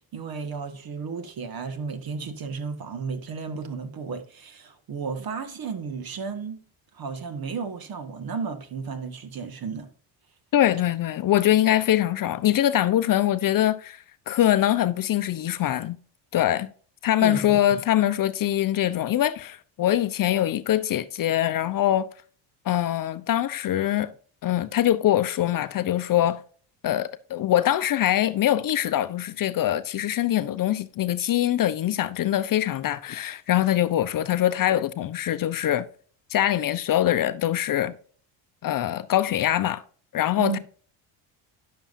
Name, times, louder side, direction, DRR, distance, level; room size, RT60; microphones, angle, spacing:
voice 1, 0.1-6.6 6.9-9.9 17.2-17.6 40.4-40.6, right 5 dB, 45° right, 1.7 m, -33 dB
voice 2, 10.5-16.0 16.3-16.7 17.0-22.1 22.7-24.1 24.4-26.4 26.8-35.9 36.3-37.9 38.6-39.8 40.1-40.6, left 12 dB, 45° left, 0.7 m, -23 dB
10.5 x 7.0 x 2.6 m
supercardioid pair, 75°, 48 cm